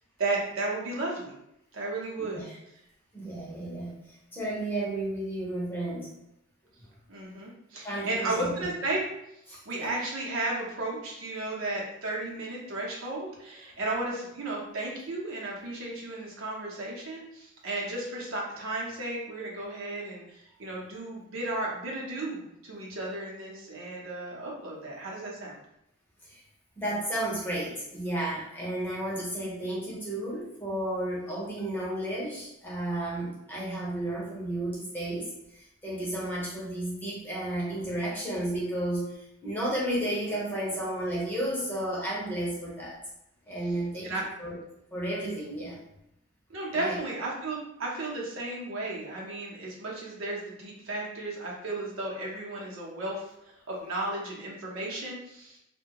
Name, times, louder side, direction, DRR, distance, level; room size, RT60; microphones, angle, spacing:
voice 1, 0.2-1.3 1.7-2.4 7.1-9.0 9.7-25.6 44.0-44.2 46.5-53.3 53.7-55.6, right 2 dB, 60° right, -3 dB, 0.7 m, -34 dB
voice 2, 3.1-6.2 7.8-8.7 9.5-10.0 26.3-26.4 26.8-43.0 43.5-44.1 44.4-44.6 44.9-45.8 46.7-47.0, right 1 dB, 10° left, -6 dB, 0.6 m, -33 dB
2.7 x 2.2 x 2.8 m, 0.83 s
head